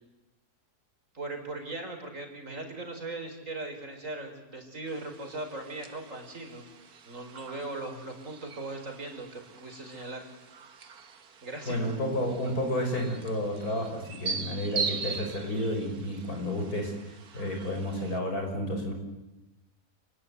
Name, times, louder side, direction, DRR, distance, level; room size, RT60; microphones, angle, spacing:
voice 1, 1.1-6.7 7.0-10.3 11.4-11.8, right 2 dB, 55° right, 4 dB, 5.1 m, -39 dB
sound 1, 4.9-18.2, right 5 dB, 80° right, 2.0 m, -41 dB
voice 2, 11.7-18.9, equal, 75° left, 3 dB, 6.3 m, -31 dB
29.0 x 20.0 x 9.6 m, 1.0 s
omnidirectional pair, 1.6 m